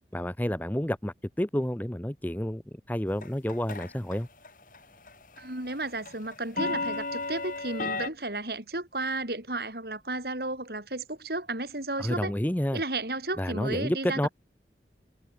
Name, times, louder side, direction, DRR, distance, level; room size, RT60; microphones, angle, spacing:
voice 1, 0.1-4.3 12.0-12.8 13.4-14.3, equal, 10° left, 0.7 m, -30 dB
sound 1, 3.2-4.2 4.4-4.8 5.1-8.1, left 3 dB, 50° left, 5.1 m, -33 dB
voice 2, 5.4-12.3 12.7-14.2, right 2 dB, 60° right, 6.1 m, -33 dB
head